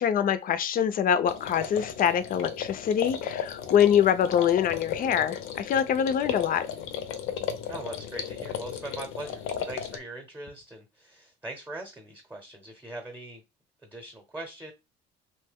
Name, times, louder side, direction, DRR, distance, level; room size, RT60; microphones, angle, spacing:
voice 1, 0.0-6.7, left 9 dB, 45° left, 0.4 m, -24 dB
sound 1, 1.3-10.0, left 8 dB, 90° left, 0.6 m, -35 dB
voice 2, 7.7-13.4 13.8-14.7, right 2 dB, 10° right, 0.8 m, -41 dB
2.9 x 2.2 x 3.4 m
cardioid pair, 110°, 20 cm